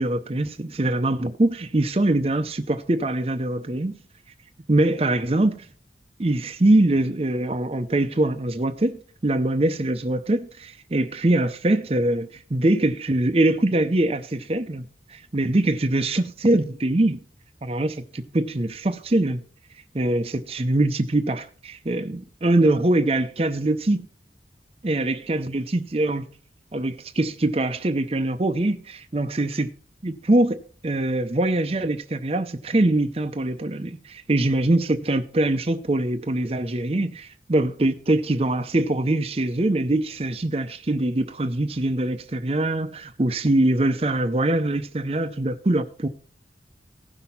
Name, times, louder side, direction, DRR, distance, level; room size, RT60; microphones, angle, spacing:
voice 1, 0.0-4.0 4.7-5.7 6.2-17.2 17.6-19.4 19.9-24.1 24.8-26.3 26.7-29.7 30.0-46.1, right 1 dB, 35° right, 0.6 m, -23 dB
16.0 x 6.0 x 5.6 m
head